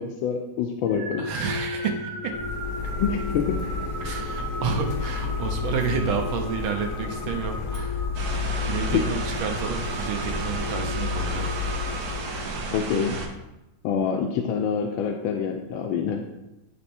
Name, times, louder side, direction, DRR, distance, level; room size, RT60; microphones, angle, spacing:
voice 1, 0.0-1.3 3.0-3.6 8.9-9.0 12.7-13.2 13.8-16.2, left 7 dB, 85° left, 3 dB, 1.4 m, -26 dB
sound 1, 0.9-12.8, left 2 dB, 20° right, 1.0 m, -36 dB
voice 2, 1.2-2.4 4.0-8.1 8.6-11.5 12.1-12.2, right 6 dB, 85° right, 3 dB, 1.5 m, -30 dB
Printer, 2.3-12.7, left 5 dB, 60° left, 0.8 m, -32 dB
sound 2, 8.1-13.3, right 3 dB, 60° right, 1.2 m, -33 dB
9.3 x 3.4 x 4.3 m, 0.94 s
omnidirectional pair, 2.2 m